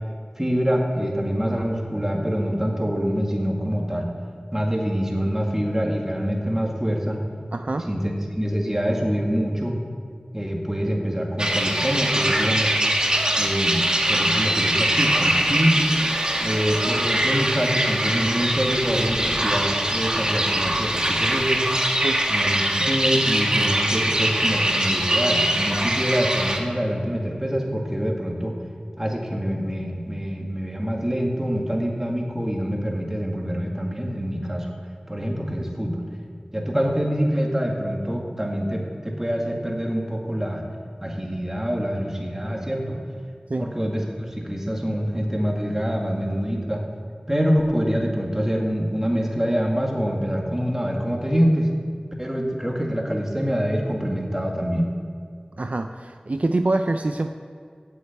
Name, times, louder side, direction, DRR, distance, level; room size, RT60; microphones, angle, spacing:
voice 1, 0.4-4.1 4.5-7.2 7.9-9.8 10.3-12.8 13.4-15.8 16.4-21.6 22.3-28.5 29.0-34.7 35.1-36.0 36.5-40.6 41.0-43.0 43.6-46.8 47.3-51.7 52.2-54.9, equal, 15° right, 0 dB, 2.0 m, -25 dB
voice 2, 7.5-7.9 22.0-22.2 43.5-43.7 55.6-57.3, right 2 dB, 60° right, 7 dB, 0.5 m, -25 dB
sound 1, 11.4-26.6, right 1 dB, 30° right, 1.4 m, -22 dB
8.7 x 8.1 x 8.4 m, 2.1 s
wide cardioid pair, 50°, 3 cm